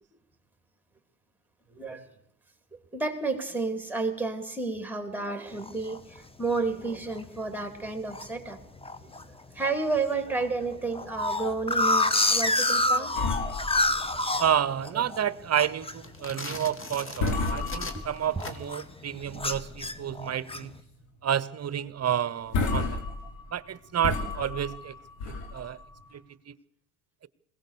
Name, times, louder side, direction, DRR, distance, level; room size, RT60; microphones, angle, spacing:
voice 1, 1.7-2.0 2.7-8.6 9.0-9.1 9.5-13.1 13.8-14.0 14.9-15.0 17.6-17.9 18.4-18.7 19.3-19.4, right 3 dB, 5° right, 3.5 m, -31 dB
sound 1, 5.6-6.0 6.5-6.6 6.9-7.2 7.6-8.3 8.8-9.2 9.6-9.7 10.0-10.1 10.4-15.2 15.5-18.1 18.4-18.9 19.4-20.7, left 2 dB, 10° left, 1.2 m, -28 dB
sound 2, 13.2-15.0 15.3-15.5 16.0-16.2 16.7-16.9 17.2-18.5 19.0-19.9 20.2-20.3 20.8-21.0 21.3-21.4 22.0-22.1 22.4-26.1, left 3 dB, 80° left, 4.4 m, -32 dB
voice 2, 14.4-20.8 21.2-23.0 23.5-24.9 25.3-25.8 26.1-26.2 26.5-26.6, right 9 dB, 35° right, 0.9 m, -30 dB
sound 3, 15.9-18.9, left 3 dB, 25° left, 2.5 m, -40 dB
21.5 x 17.5 x 7.0 m
supercardioid pair, 75°, 45 cm